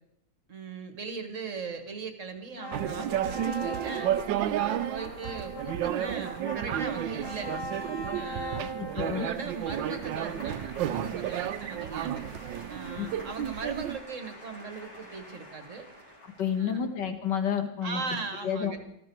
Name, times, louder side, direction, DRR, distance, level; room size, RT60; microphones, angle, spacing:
voice 1, 0.5-4.1 4.5-7.5 8.1-12.1 12.7-15.8 16.6-16.8 17.8-18.8, right 4 dB, 45° right, 7 dB, 1.7 m, -39 dB
sound 1, 2.6-16.7, equal, 50° left, 4.6 m, -42 dB
sound 2, 2.7-14.0, right 11 dB, 80° right, 1.4 m, -32 dB
voice 2, 8.5-9.3 13.0-13.1 16.4-18.0 18.4-18.8, left 7 dB, 65° left, 6 dB, 2.1 m, -30 dB
19.0 x 14.0 x 4.6 m, 0.80 s
omnidirectional pair, 2.0 m